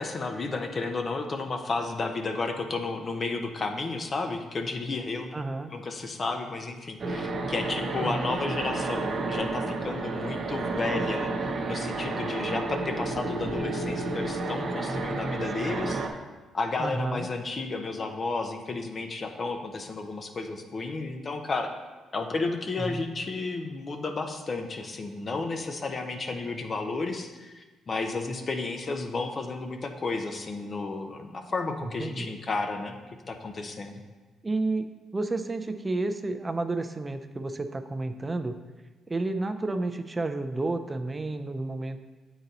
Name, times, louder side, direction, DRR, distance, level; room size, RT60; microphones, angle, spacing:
voice 1, 0.0-5.4 5.7-16.1 16.5-21.7 22.1-33.0 33.3-34.0, left 3 dB, 40° left, 5 dB, 0.6 m, -32 dB
voice 2, 5.3-5.7 8.0-8.4 14.9-15.8 16.8-17.3 22.8-23.0 31.8-32.3 34.4-34.9 35.1-38.6 39.1-42.0, right 2 dB, 25° right, 8 dB, 0.4 m, -31 dB
sound 1, 7.0-16.1, right 3 dB, 50° right, 0.7 m, -31 dB
7.8 x 4.0 x 4.0 m, 1.2 s
cardioid pair, 90°, 0 cm